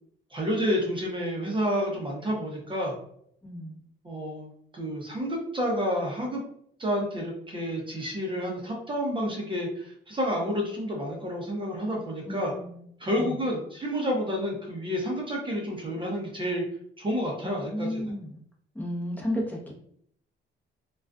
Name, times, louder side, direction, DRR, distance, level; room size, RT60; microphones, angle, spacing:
voice 1, 0.3-2.9 4.0-6.4 6.8-12.5 13.0-16.6 17.0-18.1, equal, 25° right, -2 dB, 0.7 m, -30 dB
voice 2, 3.4-3.7 12.3-12.8 13.2-13.3 17.4-18.4 18.7-19.7, equal, 10° left, -3 dB, 0.7 m, -33 dB
2.4 x 2.3 x 2.3 m, 0.66 s
cardioid pair, 90°, 20 cm